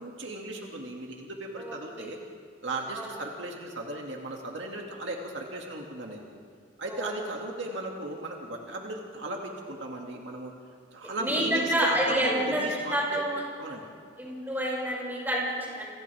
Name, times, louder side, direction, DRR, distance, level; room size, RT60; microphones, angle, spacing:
voice 1, 0.0-2.2 2.6-6.2 6.8-10.5 10.9-13.2 13.6-13.9, right 2 dB, 70° right, 0 dB, 2.3 m, -36 dB
voice 2, 1.6-2.1 2.9-3.1 6.9-7.1 11.2-12.6 12.9-13.4 14.2-15.9, equal, 10° right, -4 dB, 6.1 m, -28 dB
28.0 x 26.5 x 3.6 m, 2.2 s
head